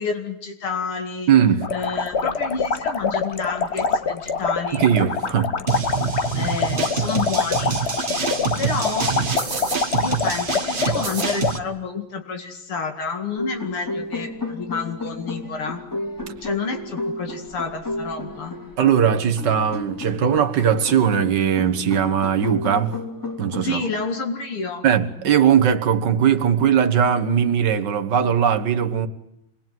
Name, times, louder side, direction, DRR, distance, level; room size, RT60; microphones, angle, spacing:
voice 1, 0.0-1.3 1.7-4.9 6.3-7.8 8.6-9.1 10.0-15.8 16.4-18.6 23.6-24.8, left 4 dB, 90° left, 3.3 m, -29 dB
voice 2, 1.3-1.7 4.7-5.5 18.8-23.0 23.4-23.8 24.8-29.1, right 8 dB, 55° right, 1.9 m, -19 dB
sound 1, 1.6-11.6, left 4 dB, 40° left, 1.1 m, -25 dB
sound 2, 5.7-11.6, right 5 dB, 25° right, 1.4 m, -26 dB
sound 3, 13.4-23.6, left 2 dB, 10° left, 3.2 m, -32 dB
27.0 x 21.0 x 9.3 m
omnidirectional pair, 2.3 m